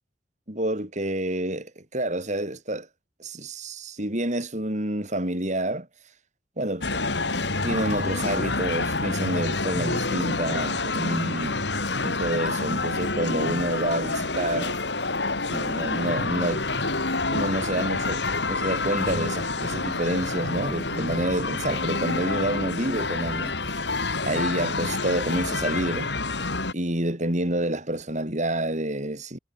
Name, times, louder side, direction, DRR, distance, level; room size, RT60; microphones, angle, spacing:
voice 1, 0.5-2.9 3.2-5.9 6.6-7.0 7.6-11.6 12.0-14.8 15.4-16.6 17.3-23.6 24.2-26.1 26.7-29.4, right 1 dB, 40° right, 6.8 m, -28 dB
sound 1, 6.8-26.7, left 3 dB, 70° left, 4.5 m, -28 dB
head